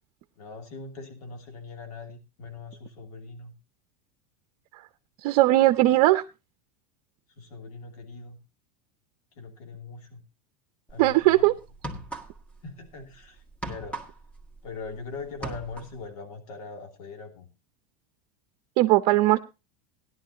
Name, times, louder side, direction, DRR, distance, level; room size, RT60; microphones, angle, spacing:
voice 1, 0.4-3.5 7.4-8.4 9.3-10.2 10.9-11.5 12.6-14.1 14.6-17.5, left 4 dB, 85° left, 4 dB, 2.8 m, -41 dB
voice 2, 5.2-6.2 11.0-11.5 18.8-19.4, right 17 dB, 60° right, 9 dB, 0.7 m, -19 dB
sound 1, 10.9-11.1 11.7-12.6 12.9-15.0 15.3-16.0, right 2 dB, 5° left, 1.9 m, -38 dB
16.5 x 11.0 x 2.8 m, 0.27 s
supercardioid pair, 125°, 19 cm